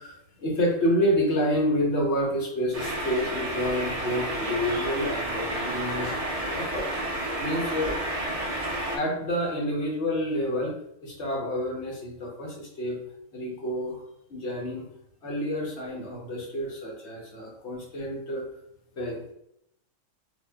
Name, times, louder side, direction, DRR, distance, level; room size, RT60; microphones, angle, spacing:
voice 1, 0.0-6.3 6.5-6.9 7.4-8.0 8.9-13.0 13.3-14.0 14.3-14.9 15.2-18.4 19.0-19.2, equal, 55° left, -2 dB, 1.2 m, -28 dB
sound 1, 2.7-9.0, right 1 dB, 40° right, 0.5 m, -31 dB
4.8 x 2.5 x 2.3 m, 0.77 s
omnidirectional pair, 1.5 m